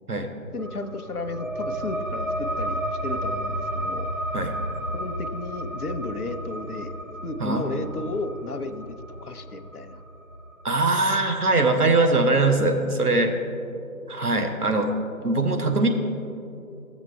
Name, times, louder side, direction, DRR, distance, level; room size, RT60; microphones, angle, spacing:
voice 1, 0.5-4.1 4.9-6.9 7.2-10.0, left 2 dB, 80° left, 9 dB, 0.8 m, -33 dB
sound 1, 0.6-11.7, equal, 60° right, 1.2 m, -32 dB
voice 2, 10.6-13.4 14.1-14.9 15.2-15.9, right 2 dB, 90° right, 4 dB, 1.1 m, -22 dB
13.0 x 7.4 x 3.3 m, 2.7 s
figure-of-eight pair, 155°, 44 cm